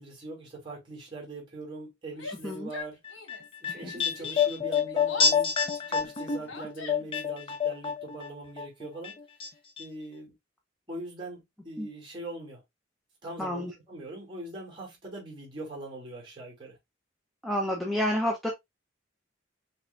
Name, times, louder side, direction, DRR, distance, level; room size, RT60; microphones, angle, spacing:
voice 1, 0.0-3.0 3.6-5.5 5.9-9.2 9.8-10.3 10.9-12.6 13.2-16.8, right 2 dB, 25° right, 2.7 m, -41 dB
Yell, 2.1-3.6 3.8-7.3, left 3 dB, 80° left, 1.2 m, -43 dB
sound 1, 3.0-8.3 8.6-9.5 9.8-9.9, left 6 dB, 30° left, 0.5 m, -28 dB
voice 2, 13.4-13.7 17.4-18.5, left 1 dB, ahead, 0.9 m, -29 dB
5.8 x 3.3 x 2.6 m
head